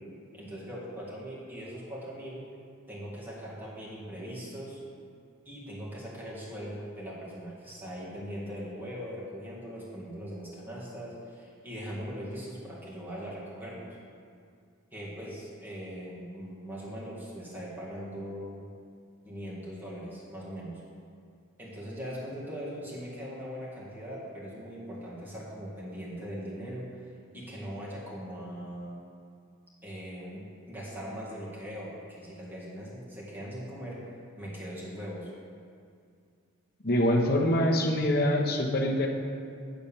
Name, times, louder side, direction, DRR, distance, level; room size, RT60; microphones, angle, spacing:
voice 1, 0.3-2.4 2.9-4.8 5.5-14.0 14.9-18.7 19.2-20.8 21.6-27.0 27.3-29.0 29.8-34.0 34.4-35.3, equal, 10° right, -7 dB, 1.9 m, -40 dB
voice 2, 36.8-39.1, left 1 dB, 45° left, 0 dB, 0.9 m, -24 dB
9.0 x 4.1 x 7.0 m, 2.3 s
head